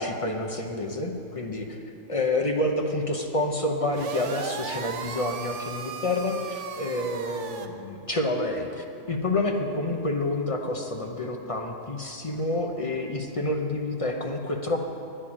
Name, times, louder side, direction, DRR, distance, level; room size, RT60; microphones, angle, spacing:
voice 1, 0.0-1.8 2.1-14.8, left 2 dB, 35° left, 2 dB, 0.6 m, -28 dB
sound 1, 3.9-7.7, right 6 dB, 65° right, 1.0 m, -36 dB
10.0 x 6.7 x 8.7 m, 2.7 s
omnidirectional pair, 1.4 m